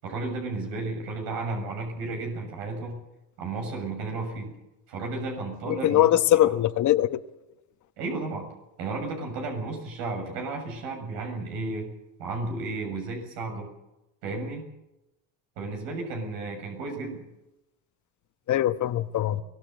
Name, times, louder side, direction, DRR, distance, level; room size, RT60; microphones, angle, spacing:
voice 1, 0.0-3.0 3.4-4.6 4.9-6.0 6.4-6.5 8.0-8.5 8.8-11.9 12.2-13.7 14.2-14.7 15.6-17.2, right 3 dB, 85° right, 7.1 m, -33 dB
voice 2, 5.6-7.2 18.5-19.4, left 13 dB, 50° left, 1.4 m, -22 dB
23.5 x 17.0 x 8.1 m
supercardioid pair, 105°, 37 cm